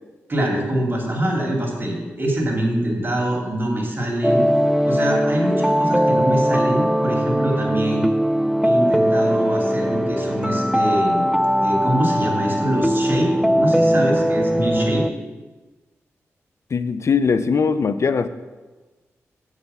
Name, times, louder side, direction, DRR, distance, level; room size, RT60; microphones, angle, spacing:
voice 1, 0.3-4.4 4.8-8.1 8.6-11.3 11.6-15.0, right 1 dB, 35° right, 0 dB, 2.8 m, -24 dB
sound 1, 4.2-15.1, equal, 5° right, 0.4 m, -20 dB
voice 2, 16.7-18.3, left 5 dB, 55° left, 13 dB, 0.5 m, -20 dB
7.5 x 4.9 x 6.9 m, 1.3 s
supercardioid pair, 40°, 6 cm